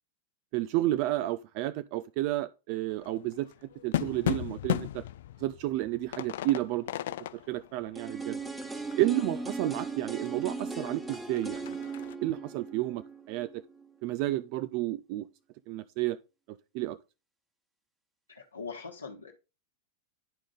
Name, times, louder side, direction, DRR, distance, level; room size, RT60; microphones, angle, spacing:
voice 1, 0.5-3.5 3.8-5.0 5.4-6.9 7.3-8.4 9.0-11.8 12.2-13.6 14.0-15.3 15.7-16.2 16.5-17.0, right 16 dB, 45° right, 0.4 m, -31 dB
sound 1, 2.9-9.8 10.3-10.4 10.6-12.1, left 13 dB, 55° left, 0.3 m, -36 dB
sound 2, 7.9-13.9 14.2-14.3, right 3 dB, 10° right, 1.2 m, -38 dB
voice 2, 18.3-19.3, left 5 dB, 80° left, 1.2 m, -41 dB
11.0 x 4.9 x 3.7 m
figure-of-eight pair, 90°, 0 cm